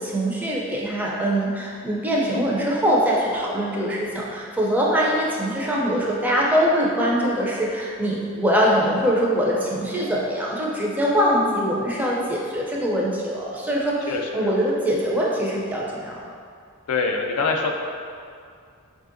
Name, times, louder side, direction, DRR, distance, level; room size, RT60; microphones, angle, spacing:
voice 1, 0.0-14.0 14.3-16.2, equal, 5° right, -4 dB, 0.4 m, -23 dB
voice 2, 14.1-14.5 16.9-17.7, left 4 dB, 90° left, 1 dB, 0.4 m, -24 dB
4.1 x 2.6 x 2.5 m, 2.3 s
head